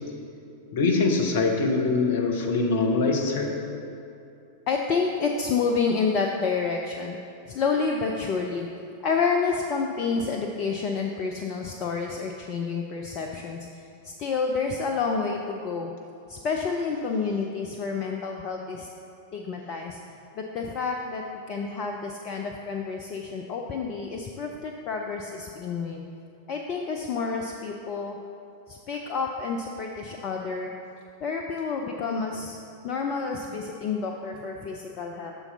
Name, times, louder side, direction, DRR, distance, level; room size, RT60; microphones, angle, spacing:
voice 1, 0.7-3.5, left 3 dB, 55° left, 2 dB, 0.9 m, -23 dB
voice 2, 4.7-7.2 7.5-8.7 9.0-15.9 16.3-18.9 19.3-20.0 20.3-26.1 26.5-28.2 28.7-30.7 31.2-32.6 32.8-35.3, left 5 dB, 40° left, 2 dB, 0.4 m, -29 dB
6.9 x 3.8 x 5.5 m, 2.7 s
figure-of-eight pair, 90°, 0 cm